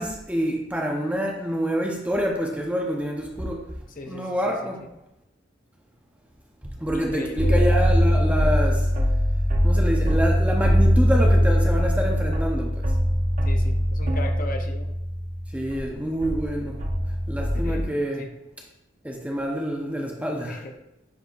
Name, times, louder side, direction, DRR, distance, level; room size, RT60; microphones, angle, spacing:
voice 1, 0.0-3.7 4.1-4.9 6.8-8.9 9.6-12.9 15.5-16.9 17.3-18.3 19.0-20.6, equal, 5° right, 0 dB, 0.7 m, -27 dB
voice 2, 4.0-4.9 6.9-7.7 13.4-14.9 17.5-18.3 20.4-20.7, left 1 dB, 45° left, 4 dB, 0.7 m, -37 dB
sound 1, 7.4-15.9 16.2-17.8, equal, 40° right, 0.8 m, -21 dB
10.0 x 4.2 x 2.4 m, 0.88 s
head